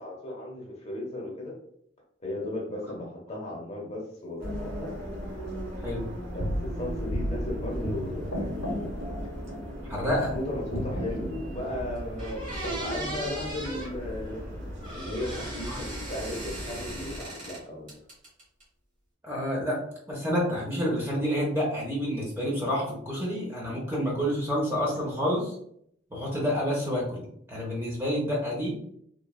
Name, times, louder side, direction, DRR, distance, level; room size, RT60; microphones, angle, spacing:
voice 1, 0.0-1.5 2.2-4.9 6.2-8.9 10.1-14.5 14.9-17.9, left 1 dB, 30° left, -2 dB, 0.7 m, -36 dB
sound 1, 4.4-17.2, equal, 85° right, 1.0 m, -38 dB
sound 2, 6.4-10.4 10.7-12.8, equal, 85° left, 0.6 m, -35 dB
voice 2, 9.8-10.3 15.7-15.8 19.2-19.8 20.1-25.6 26.1-28.8, equal, 10° right, -4 dB, 0.6 m, -28 dB
sound 3, 11.7-11.8 12.2-13.9 14.8-17.6 17.9-18.6, right 1 dB, 40° right, 1.0 m, -38 dB
3.0 x 2.2 x 2.3 m, 0.69 s
head